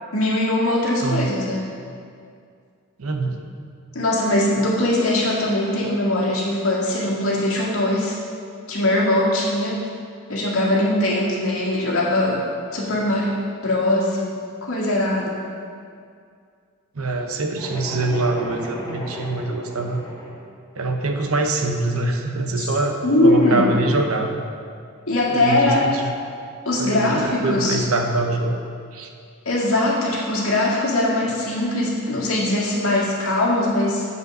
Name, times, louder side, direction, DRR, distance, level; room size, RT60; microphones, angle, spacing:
voice 1, 0.1-1.7 3.9-8.2 8.7-9.8 10.3-12.4 12.7-14.3 14.6-15.4 22.6-22.7 23.0-23.7 25.1-25.9 26.7-27.8 29.5-34.1, left 1 dB, 80° left, -5 dB, 1.9 m, -21 dB
voice 2, 1.0-1.4 3.0-3.4 16.9-20.0 20.7-24.5 25.3-26.1 26.8-28.6 28.9-29.1, right 2 dB, 85° right, 4 dB, 0.9 m, -24 dB
sound 1, 17.6-20.5, left 1 dB, 20° left, 1.7 m, -36 dB
8.1 x 5.3 x 6.2 m, 2.3 s
head